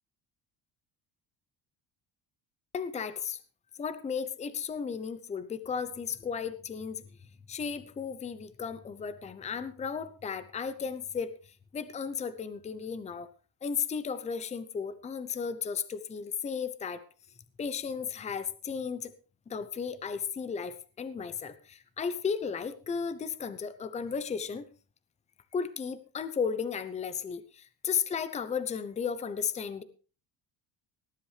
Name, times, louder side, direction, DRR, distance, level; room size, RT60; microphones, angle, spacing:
voice 1, 2.7-3.4 3.8-7.0 7.5-11.3 11.7-13.3 13.6-17.0 17.6-19.1 19.5-24.7 25.5-29.8, left 6 dB, 20° left, 14 dB, 0.7 m, -34 dB
18.5 x 11.0 x 3.3 m, 0.36 s
cardioid pair, 150°, 38 cm